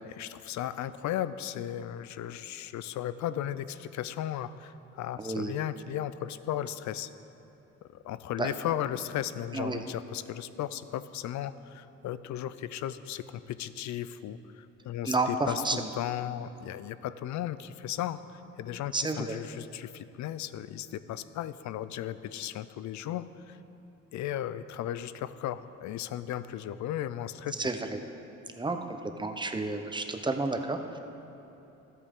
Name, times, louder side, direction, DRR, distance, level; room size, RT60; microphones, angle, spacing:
voice 1, 0.0-7.1 7.9-23.6 24.1-27.5, left 11 dB, 70° left, 14 dB, 0.5 m, -36 dB
voice 2, 5.2-5.5 8.4-8.5 9.5-9.8 15.0-15.9 18.9-19.4 27.6-28.0 28.6-31.0, right 3 dB, 15° right, 6 dB, 0.7 m, -31 dB
13.5 x 8.2 x 3.7 m, 3.0 s
cardioid pair, 90°, 30 cm